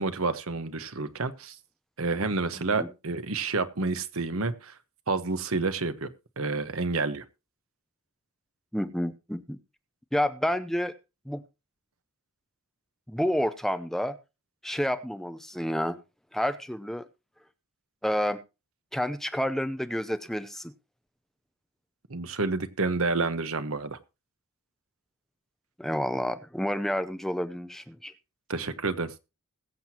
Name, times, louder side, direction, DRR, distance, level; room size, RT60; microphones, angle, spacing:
voice 1, 0.0-1.6 2.0-4.7 5.1-7.2 22.1-24.0 28.5-29.1, right 3 dB, 65° right, 1.2 m, -29 dB
voice 2, 8.7-9.6 10.1-10.9 11.3-11.4 13.1-14.2 14.6-16.0 16.3-17.0 18.0-18.4 18.9-20.7 25.8-28.1, equal, ahead, 0.6 m, -29 dB
21.0 x 7.9 x 2.9 m
head